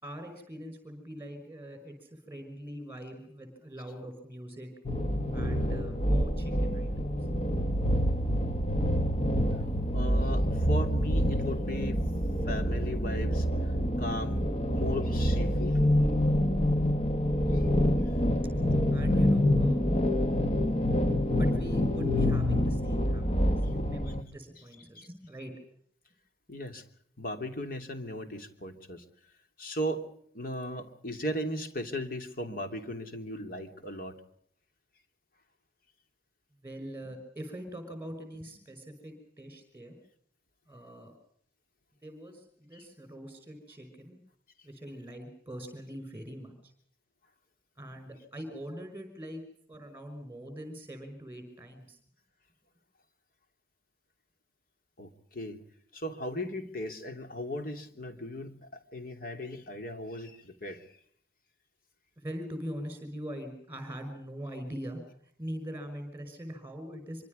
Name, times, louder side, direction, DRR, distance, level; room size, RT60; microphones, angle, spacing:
voice 1, 0.0-4.7 5.3-7.2 18.3-19.9 21.3-25.5 36.6-40.0 40.7-41.1 42.0-44.2 44.6-46.7 47.8-49.4 49.7-52.0 62.2-65.0 65.4-67.3, equal, 15° right, 8 dB, 5.7 m, -42 dB
sound 1, 4.9-24.2, equal, 35° left, 1.5 m, -27 dB
voice 2, 9.9-12.1 12.5-14.4 14.7-15.8 17.5-17.6 24.1-24.2 24.8-25.1 26.5-26.8 27.2-29.0 29.6-30.1 30.3-34.2 42.7-42.8 55.0-55.6 55.9-60.9, equal, 50° left, 6 dB, 3.1 m, -37 dB
25.5 x 25.0 x 5.3 m, 0.64 s
head